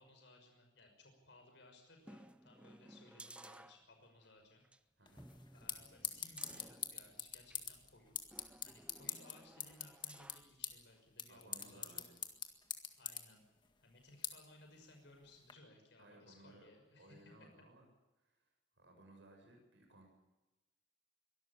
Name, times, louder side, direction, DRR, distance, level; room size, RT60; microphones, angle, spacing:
voice 1, 0.0-4.6 5.0-5.1 5.5-8.2 8.6-12.1 13.0-13.5 13.8-17.5 19.5-19.6, left 2 dB, 70° left, 3 dB, 5.9 m, -62 dB
sound 1, 2.0-4.3 4.6-4.8 5.2-7.7 8.3-10.5 11.0-11.1, right 1 dB, 5° right, 0.7 m, -58 dB
sound 2, 5.1-15.5, left 7 dB, 25° left, 1.9 m, -47 dB
voice 2, 11.3-12.2 16.0-16.7 17.0-17.9 18.2-18.4 18.8-20.1, right 1 dB, 80° right, 2 dB, 7.6 m, -61 dB
23.5 x 13.5 x 10.0 m, 1.0 s
head